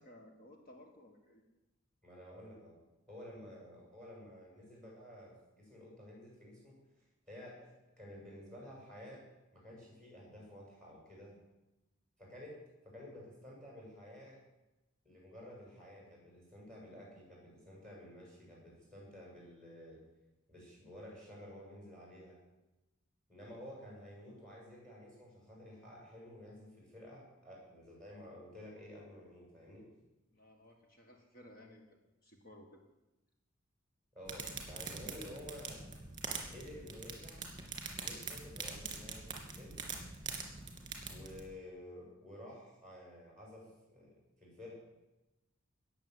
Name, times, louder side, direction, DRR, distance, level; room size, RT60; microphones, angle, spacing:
voice 1, 0.0-1.4 30.3-32.8, left 1 dB, 45° left, 2 dB, 1.6 m, -58 dB
voice 2, 2.0-2.8 3.1-6.7 7.3-7.7 8.0-9.2 9.5-11.3 12.2-12.6 12.8-14.4 15.0-20.0 20.5-22.4 23.3-29.9 34.1-35.8 36.5-37.4 37.9-39.8 41.1-44.8, left 1 dB, 5° left, -3 dB, 7.3 m, -52 dB
sound 1, 34.2-41.5, right 4 dB, 25° right, 2.6 m, -44 dB
19.0 x 7.4 x 7.9 m, 1.0 s
head